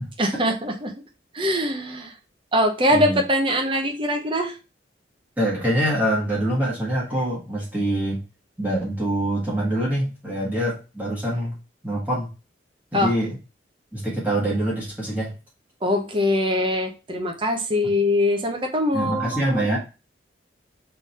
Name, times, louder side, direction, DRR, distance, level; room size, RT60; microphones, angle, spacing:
voice 1, 0.2-0.9 1.3-2.2 2.5-4.6 12.9-13.1 15.8-19.8, left 1 dB, 25° right, 2 dB, 0.8 m, -23 dB
voice 2, 2.9-3.2 5.4-8.2 8.6-11.6 11.8-12.3 12.9-13.4 13.9-15.3 18.9-19.8, right 1 dB, 10° right, -6 dB, 1.4 m, -24 dB
3.7 x 3.4 x 4.1 m, 0.31 s
head